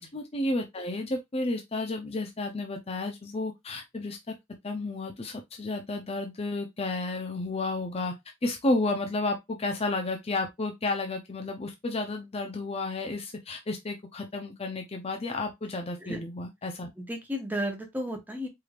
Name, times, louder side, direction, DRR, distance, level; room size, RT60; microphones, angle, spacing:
voice 1, 0.1-4.3 4.6-8.1 8.4-16.9, left 2 dB, 30° left, 0.6 m, -32 dB
voice 2, 17.0-18.5, equal, 10° right, 1.0 m, -33 dB
4.7 x 3.4 x 2.4 m
head